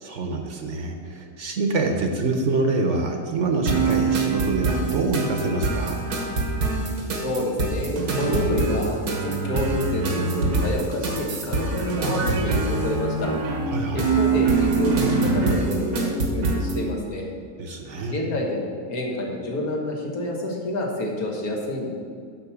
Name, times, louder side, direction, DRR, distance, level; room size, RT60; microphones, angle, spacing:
voice 1, 0.0-6.0 13.7-14.0 17.6-18.2, right 3 dB, 55° right, 4 dB, 1.1 m, -26 dB
sound 1, 3.7-16.8, right 3 dB, 85° right, 1.8 m, -24 dB
voice 2, 7.2-13.3 13.9-17.3 18.0-21.9, left 1 dB, 70° left, 0 dB, 1.9 m, -28 dB
10.5 x 4.4 x 7.0 m, 2.1 s
omnidirectional pair, 1.6 m